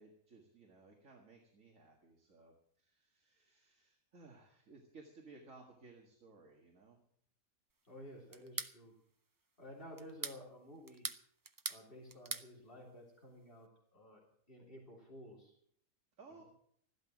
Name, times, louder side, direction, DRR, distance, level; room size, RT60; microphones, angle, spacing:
voice 1, 0.0-7.0 16.2-16.4, right 3 dB, 65° right, 1 dB, 2.2 m, -59 dB
voice 2, 7.8-8.9 9.6-11.1 11.7-14.2 14.5-15.5, left 1 dB, 40° left, -1 dB, 3.6 m, -53 dB
sound 1, 8.3-8.8 10.0-10.4 10.9-11.8 12.1-12.5, right 3 dB, 35° right, 0.3 m, -41 dB
15.0 x 12.0 x 6.2 m, 0.65 s
omnidirectional pair, 1.4 m